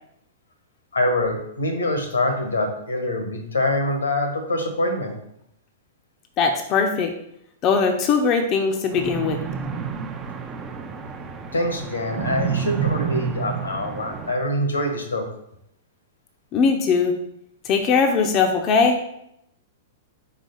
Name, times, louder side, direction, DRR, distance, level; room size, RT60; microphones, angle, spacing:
voice 1, 0.9-5.1 11.5-15.3, left 1 dB, 85° left, 4 dB, 1.3 m, -24 dB
voice 2, 6.4-7.1 7.6-9.4 16.5-17.1 17.6-19.0, left 5 dB, 35° left, 4 dB, 0.7 m, -20 dB
sound 1, 8.9-14.3, right 7 dB, 20° right, 0.7 m, -29 dB
4.9 x 3.7 x 5.3 m, 0.76 s
figure-of-eight pair, 105°, 0 cm